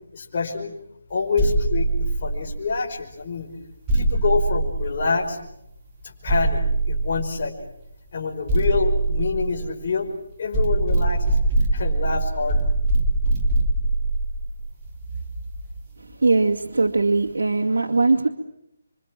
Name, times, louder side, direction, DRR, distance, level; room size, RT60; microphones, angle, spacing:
voice 1, 0.1-0.7 1.1-3.5 3.9-5.4 6.0-6.6 6.9-7.5 8.1-10.1 10.4-11.4 11.7-12.6 16.1-16.2, left 4 dB, 40° left, 1 dB, 5.2 m, -26 dB
sound 1, 1.4-2.9 3.9-5.5 6.3-7.6 8.5-10.1 10.5-15.8, right 2 dB, 20° right, 3.0 m, -23 dB
voice 2, 16.2-18.3, right 3 dB, 90° right, 0 dB, 2.2 m, -20 dB
27.5 x 25.0 x 7.6 m, 0.77 s
hypercardioid pair, 170°, 0 cm